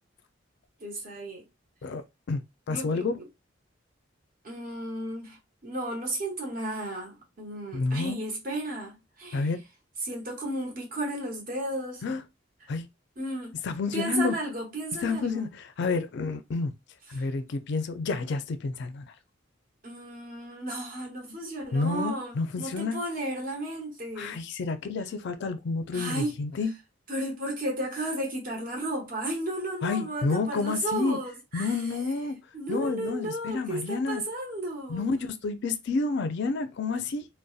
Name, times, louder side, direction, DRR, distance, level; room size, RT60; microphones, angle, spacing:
voice 1, 0.8-1.5 2.7-3.3 4.4-9.5 10.0-12.0 12.6-12.7 13.2-13.5 13.9-15.5 17.1-17.3 19.8-24.4 25.9-26.3 27.1-31.8 32.5-35.1, right 1 dB, 45° right, 1.0 m, -34 dB
voice 2, 1.8-2.4 2.7-3.1 7.7-8.2 9.3-9.6 12.0-12.2 12.7-12.9 13.6-14.4 15.0-16.7 17.1-19.1 21.7-23.0 24.2-26.7 29.8-31.2 31.5-32.4 32.7-34.2 34.9-37.3, left 4 dB, 60° left, 0.4 m, -29 dB
2.6 x 2.1 x 2.3 m
head